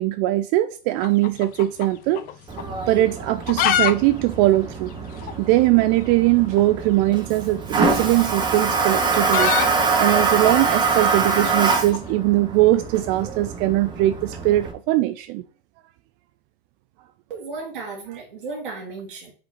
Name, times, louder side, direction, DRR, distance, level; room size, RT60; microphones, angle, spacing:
voice 1, 0.0-2.2 2.9-4.9 5.4-9.5 10.0-15.4, right 16 dB, 35° right, 0.5 m, -20 dB
sound 1, 1.0-2.3 2.6-2.7 3.2-3.9 4.2-4.3 4.5-4.6 5.2-5.3 6.5-6.7 7.8-12.0, left 11 dB, 30° left, 0.7 m, -25 dB
Toilet flush, 2.5-14.7, right 4 dB, 15° right, 1.4 m, -25 dB
voice 2, 17.3-19.3, right 4 dB, 65° right, 2.2 m, -34 dB
5.7 x 5.2 x 4.1 m
hypercardioid pair, 100°, 29 cm